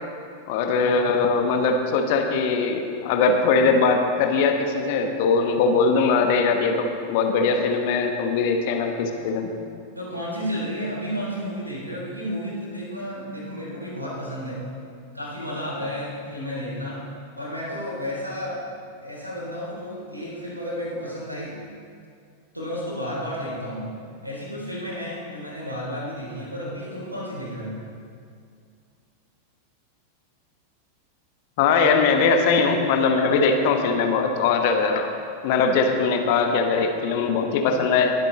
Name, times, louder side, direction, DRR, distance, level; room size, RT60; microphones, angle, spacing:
voice 1, 0.5-9.5 31.6-35.1 35.4-38.1, left 4 dB, 50° left, 4 dB, 1.2 m, -21 dB
voice 2, 10.0-14.6 15.1-17.0 17.4-21.6 22.5-23.8 24.2-27.7, equal, 85° right, -4 dB, 3.7 m, -32 dB
20.5 x 8.2 x 4.0 m, 2.3 s
figure-of-eight pair, 90°, 0 cm